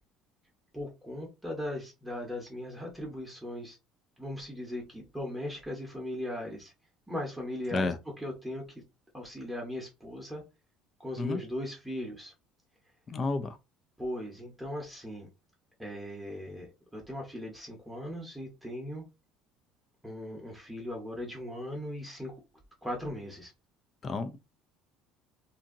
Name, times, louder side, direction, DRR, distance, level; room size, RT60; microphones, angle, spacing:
voice 1, 0.7-3.8 4.2-6.7 7.1-8.6 9.1-10.4 11.0-12.3 14.0-15.3 15.8-19.1 20.0-22.4 22.8-23.5, left 1 dB, 5° right, 0.8 m, -38 dB
voice 2, 13.1-13.6 24.0-24.4, left 3 dB, 25° left, 0.4 m, -31 dB
2.7 x 2.6 x 2.5 m
cardioid pair, 145°, 0 cm